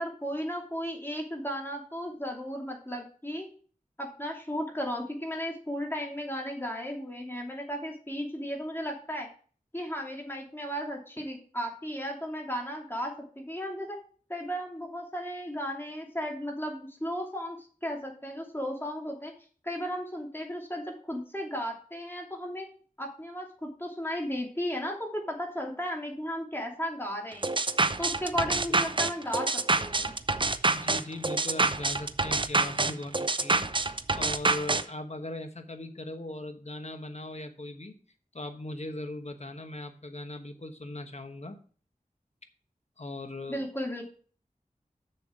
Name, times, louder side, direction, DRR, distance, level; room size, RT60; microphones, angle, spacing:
voice 1, 0.0-3.5 4.0-9.3 9.7-14.0 14.3-19.3 19.6-22.7 23.0-27.5 28.0-29.5 29.8-30.1 43.5-44.0, equal, 15° left, 0 dB, 2.6 m, -35 dB
sound 1, 27.4-34.8, right 3 dB, 35° right, 0.6 m, -27 dB
voice 2, 28.4-28.8 30.7-37.9 38.3-41.6 43.0-43.6, left 1 dB, 50° left, 6 dB, 1.2 m, -39 dB
7.0 x 6.9 x 4.7 m, 0.43 s
wide cardioid pair, 50°, 14 cm